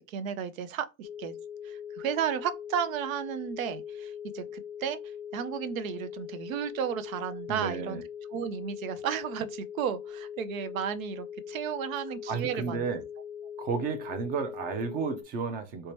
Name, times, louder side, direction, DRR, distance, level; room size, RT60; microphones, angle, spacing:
voice 1, 0.0-1.3 1.6-5.0 5.3-8.0 8.3-12.8, right 8 dB, 80° right, 0.6 m, -33 dB
sound 1, 1.0-15.2, left 8 dB, 60° left, 0.5 m, -41 dB
voice 2, 7.5-8.0 12.3-13.0 13.6-15.9, right 5 dB, 25° right, 0.4 m, -32 dB
3.3 x 2.8 x 3.1 m
supercardioid pair, 140°, 40 cm